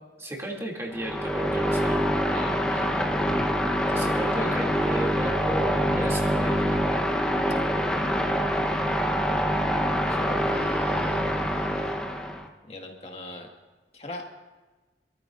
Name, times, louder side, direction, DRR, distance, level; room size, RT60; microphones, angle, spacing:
voice 1, 0.2-2.1 3.9-7.0, right 1 dB, 15° right, -2 dB, 2.8 m, -34 dB
sound 1, 0.9-12.5, equal, 5° left, 1.0 m, -25 dB
voice 2, 2.3-3.0 10.1-12.0 12.7-13.5 13.9-14.2, left 2 dB, 35° left, 1 dB, 1.9 m, -41 dB
27.0 x 13.5 x 2.6 m, 1.2 s
head